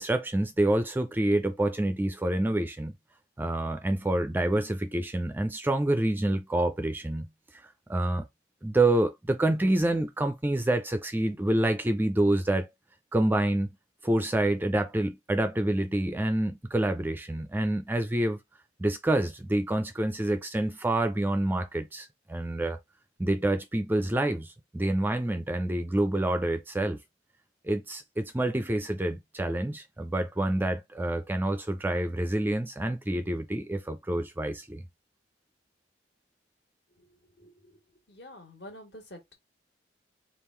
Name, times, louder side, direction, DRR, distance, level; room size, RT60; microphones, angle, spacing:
voice 1, 0.0-2.9 3.4-7.3 7.6-8.3 8.6-12.7 13.1-13.7 14.0-18.4 18.8-22.8 23.2-27.0 27.6-34.8, right 1 dB, 10° right, 0.4 m, -27 dB
voice 2, 36.9-37.8 38.1-39.3, left 1 dB, 60° left, 1.6 m, -48 dB
3.6 x 2.4 x 4.4 m
head